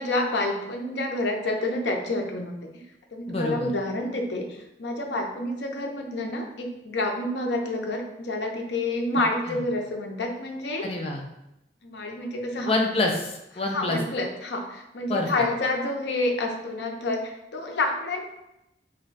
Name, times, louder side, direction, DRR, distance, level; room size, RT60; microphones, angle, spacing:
voice 1, 0.0-2.6 3.1-4.5 4.8-10.9 11.8-12.7 13.7-18.2, left 2 dB, 80° left, 2 dB, 0.6 m, -28 dB
voice 2, 3.3-3.7 9.5-9.6 10.8-11.2 12.6-14.0 15.1-15.3, left 2 dB, 35° left, 1 dB, 0.5 m, -27 dB
3.2 x 2.3 x 3.9 m, 0.88 s
head